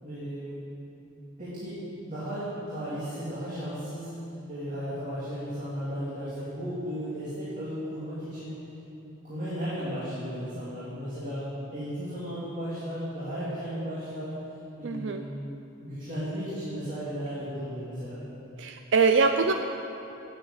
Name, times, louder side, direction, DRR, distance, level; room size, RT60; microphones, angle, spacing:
voice 1, 0.0-0.6 1.4-1.8 2.0-4.1 4.5-8.6 9.2-11.5 11.7-14.3 14.8-15.5 15.8-18.2, equal, 40° right, -11 dB, 2.8 m, -35 dB
voice 2, 14.8-15.2 18.6-19.5, right 4 dB, 65° right, 6 dB, 0.4 m, -23 dB
9.0 x 8.0 x 8.7 m, 2.8 s
head